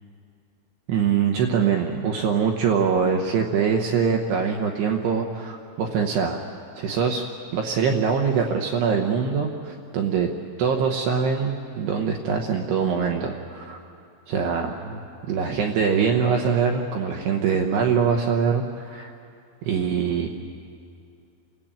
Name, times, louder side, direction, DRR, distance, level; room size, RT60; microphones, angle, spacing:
voice 1, 0.9-6.4 6.8-7.3 7.5-10.3 10.6-13.8 14.3-15.0 15.3-19.1 19.6-20.3, right 6 dB, 75° right, 2 dB, 2.6 m, -23 dB
28.0 x 16.0 x 8.8 m, 2.4 s
omnidirectional pair, 5.9 m